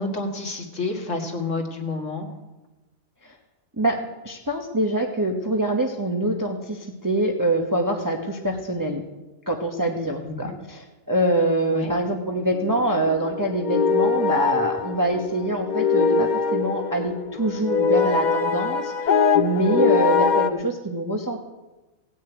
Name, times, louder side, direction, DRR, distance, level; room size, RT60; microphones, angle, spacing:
voice 1, 0.0-2.3 10.2-10.6 11.7-11.9, left 3 dB, 65° left, 2 dB, 2.3 m, -29 dB
voice 2, 4.2-9.0 9.5-21.4, right 1 dB, 15° right, 2 dB, 1.1 m, -25 dB
sound 1, 12.5-20.5, left 5 dB, 45° left, 0.6 m, -23 dB
17.0 x 6.5 x 9.1 m, 1.1 s
omnidirectional pair, 1.4 m